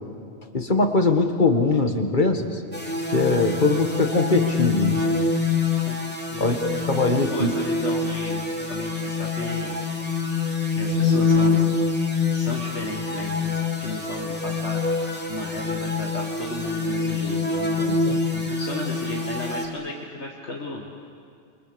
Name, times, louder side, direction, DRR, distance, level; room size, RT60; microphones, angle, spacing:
voice 1, 0.5-2.6 3.1-5.0 6.4-6.6 6.9-7.5 17.8-18.2, left 3 dB, 45° left, 6 dB, 1.8 m, -21 dB
sound 1, 2.7-19.7, left 4 dB, 10° left, 2.8 m, -25 dB
voice 2, 6.3-9.7 10.8-11.7 12.3-13.5 13.8-20.8, left 2 dB, 75° left, -1 dB, 2.2 m, -35 dB
29.5 x 24.0 x 6.9 m, 2.3 s
omnidirectional pair, 1.2 m